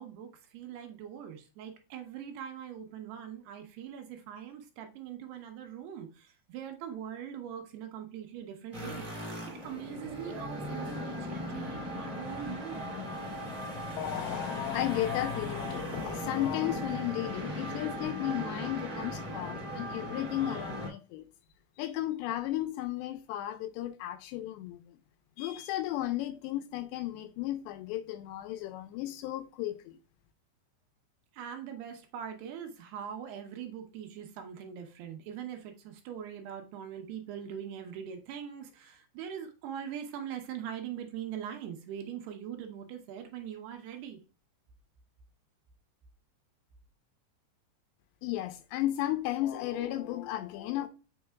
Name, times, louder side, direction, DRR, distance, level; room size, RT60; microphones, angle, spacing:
voice 1, 0.0-9.3 9.6-12.8 31.3-44.2, right 9 dB, 75° right, 2.9 m, -42 dB
sound 1, 8.7-20.9, left 1 dB, 5° right, 2.2 m, -38 dB
voice 2, 14.0-21.2 21.8-25.0 25.4-30.0 48.2-50.9, left 14 dB, 85° left, 2.7 m, -34 dB
7.6 x 5.4 x 2.3 m
omnidirectional pair, 5.2 m